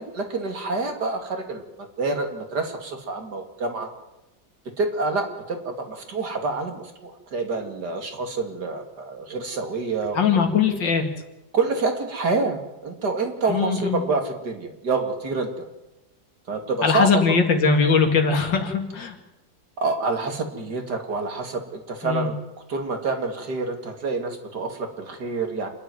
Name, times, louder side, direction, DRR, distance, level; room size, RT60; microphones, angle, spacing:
voice 1, 0.0-1.6 2.0-3.9 4.8-10.2 11.5-12.6 12.8-15.5 16.5-17.4 19.8-22.4 22.7-25.7, right 3 dB, 65° right, 5 dB, 3.0 m, -27 dB
voice 2, 10.1-11.0 13.5-14.0 16.8-19.1 22.0-22.3, left 5 dB, 85° left, 5 dB, 2.9 m, -20 dB
27.5 x 10.5 x 9.4 m, 0.99 s
omnidirectional pair, 1.9 m